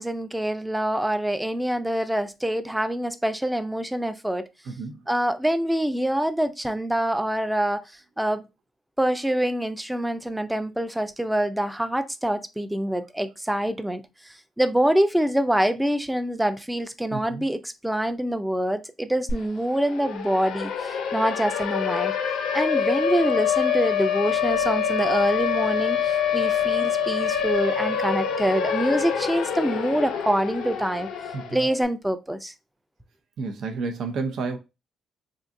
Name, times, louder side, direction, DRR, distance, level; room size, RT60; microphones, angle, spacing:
voice 1, 0.0-4.5 5.1-8.4 9.0-22.1 22.5-31.1 31.5-32.5, right 1 dB, 5° right, 0.4 m, -25 dB
voice 2, 4.7-5.0 17.1-17.4 31.3-31.6 33.4-34.6, right 4 dB, 70° right, 0.6 m, -31 dB
Siren, 19.3-19.4 19.7-31.7, left 7 dB, 85° left, 0.6 m, -26 dB
3.7 x 2.5 x 2.5 m
cardioid pair, 90°, 0 cm